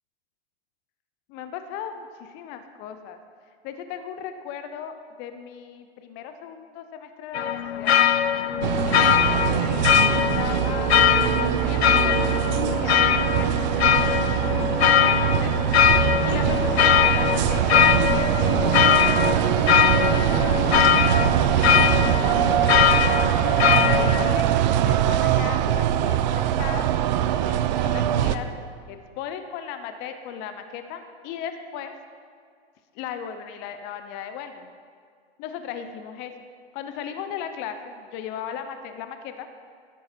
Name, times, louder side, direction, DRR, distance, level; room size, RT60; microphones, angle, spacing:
voice 1, 1.3-3.2 3.6-8.0 8.8-11.0 11.6-13.6 14.1-15.7 16.2-18.4 18.8-23.2 23.6-28.5 28.9-31.9 32.9-34.7 35.4-36.3 36.7-39.5, left 8 dB, 35° left, 8 dB, 0.8 m, -37 dB
sound 1, 7.3-24.4, left 9 dB, 80° left, 0.6 m, -21 dB
sound 2, 7.5-11.4 11.8-14.7, equal, 75° right, 3.5 m, -39 dB
sound 3, 8.6-28.3, right 11 dB, 45° right, 0.6 m, -22 dB
13.0 x 10.5 x 4.5 m, 2.1 s
hypercardioid pair, 115°, 32 cm